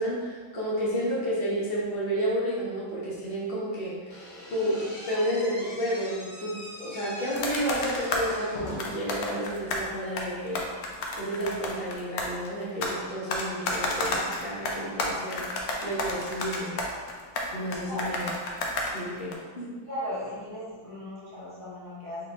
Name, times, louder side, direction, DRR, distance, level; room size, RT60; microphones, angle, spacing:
voice 1, 0.0-4.1 4.5-10.8 11.2-15.4 15.8-16.8 17.5-18.3 18.9-19.7, equal, 45° left, -5 dB, 0.8 m, -31 dB
Slam / Squeak, 4.1-9.1, left 1 dB, 70° left, 1.7 m, -42 dB
sound 1, 7.3-8.3 8.8-9.9 10.2-13.0 13.3-19.3, left 2 dB, 90° left, 0.7 m, -31 dB
voice 2, 19.9-22.3, equal, 15° left, -11 dB, 1.3 m, -37 dB
4.3 x 3.8 x 2.7 m, 1.5 s
omnidirectional pair, 2.3 m